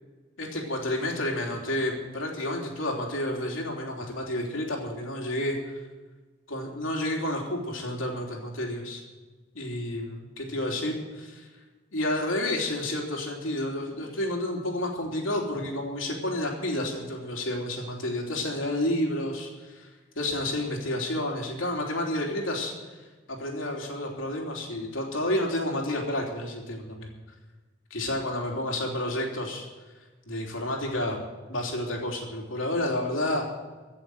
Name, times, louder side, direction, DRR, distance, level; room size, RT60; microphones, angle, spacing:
voice 1, 0.4-5.8 6.5-9.0 9.5-11.5 11.9-19.9 20.1-22.7 23.3-27.1 27.9-29.6 30.2-33.5, left 1 dB, 90° left, 0 dB, 3.3 m, -30 dB
15.5 x 7.0 x 9.6 m, 1.3 s
head